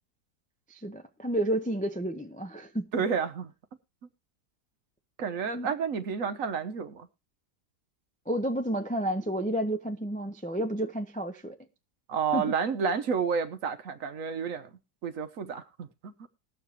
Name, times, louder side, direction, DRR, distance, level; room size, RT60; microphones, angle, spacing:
voice 1, 0.7-3.0 5.5-5.7 8.3-11.6 12.3-12.5, right 1 dB, 10° left, 0.4 m, -31 dB
voice 2, 2.9-3.5 5.2-7.1 12.1-14.7 15.0-16.3, right 6 dB, 60° right, 1.2 m, -30 dB
20.5 x 7.1 x 3.1 m
omnidirectional pair, 1.7 m